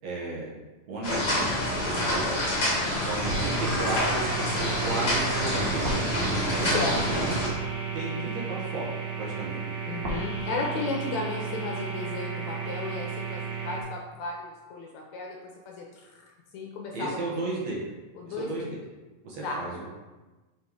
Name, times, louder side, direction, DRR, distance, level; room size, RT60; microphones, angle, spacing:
voice 1, 0.0-0.5 0.9-2.3 3.0-4.2 4.8-6.1 6.6-7.4 7.9-8.8 9.2-9.6 16.9-17.8 18.3-18.8 19.2-19.9, right 2 dB, 65° right, -4 dB, 2.3 m, -34 dB
sound 1, 1.0-7.5, left 1 dB, 35° left, 1.5 m, -27 dB
sound 2, 3.2-13.8, right 5 dB, 80° right, 0.9 m, -33 dB
voice 2, 6.6-7.1 9.8-15.4 15.7-16.1 16.5-17.3 18.2-18.7 19.4-19.6, left 3 dB, 75° left, 0 dB, 1.8 m, -34 dB
5.5 x 4.3 x 4.6 m, 1.2 s
omnidirectional pair, 3.7 m